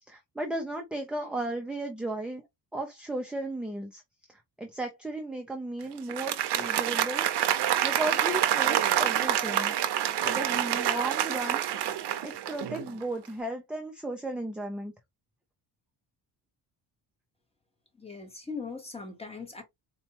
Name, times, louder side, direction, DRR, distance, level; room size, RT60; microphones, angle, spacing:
voice 1, 0.1-2.4 2.7-4.0 4.6-7.2 7.8-9.7 10.2-11.6 12.2-14.9, right 1 dB, ahead, 0.4 m, -35 dB
Applause, 6.0-13.0, right 11 dB, 70° right, 0.7 m, -27 dB
voice 2, 18.0-19.6, left 4 dB, 15° left, 1.0 m, -40 dB
4.1 x 2.3 x 2.8 m
cardioid pair, 155°, 42 cm